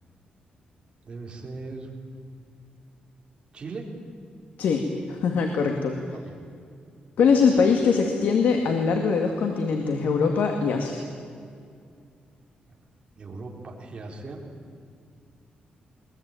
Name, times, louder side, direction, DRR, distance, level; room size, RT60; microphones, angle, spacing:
voice 1, 1.0-1.9 3.5-3.9 6.3-6.4 13.1-14.4, right 3 dB, 35° right, 0 dB, 4.1 m, -38 dB
voice 2, 5.1-6.0 7.2-11.0, left 5 dB, 75° left, 4 dB, 2.2 m, -22 dB
22.0 x 21.5 x 9.0 m, 2.3 s
wide cardioid pair, 150°, 3 cm